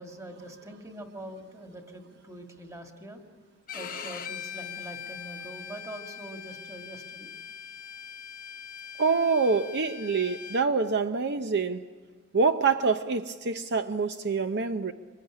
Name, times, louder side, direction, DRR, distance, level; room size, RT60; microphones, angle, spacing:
voice 1, 0.0-3.2 3.7-7.3, right 1 dB, 15° right, 2.0 m, -44 dB
Bowed string instrument, 3.7-10.6, left 8 dB, 40° left, 1.0 m, -41 dB
voice 2, 9.0-11.8 12.3-14.9, right 4 dB, 50° right, 0.7 m, -26 dB
25.0 x 22.5 x 9.9 m
head